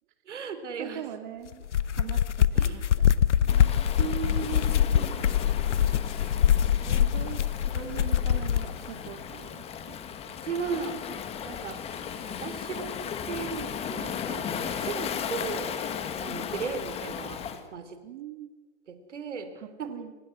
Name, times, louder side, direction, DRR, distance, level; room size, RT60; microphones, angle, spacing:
voice 1, 0.3-1.1 2.5-2.8 4.0-6.4 6.9-7.0 10.4-11.0 11.4-11.8 12.2-12.9 13.2-15.7 16.2-17.4 17.7-18.0 18.9-19.5 19.8-20.0, right 6 dB, 85° right, 8 dB, 4.4 m, -36 dB
voice 2, 0.8-1.7 2.0-3.7 7.0-7.4 7.7-10.0 18.0-18.5 19.5-20.1, right 10 dB, 45° right, 6 dB, 2.7 m, -42 dB
sound 1, 1.5-8.7, left 9 dB, 90° left, 1.1 m, -24 dB
Waves surf, 3.5-17.6, left 8 dB, 15° left, 1.9 m, -36 dB
28.5 x 24.0 x 6.3 m, 1.2 s
hypercardioid pair, 150°, 35 cm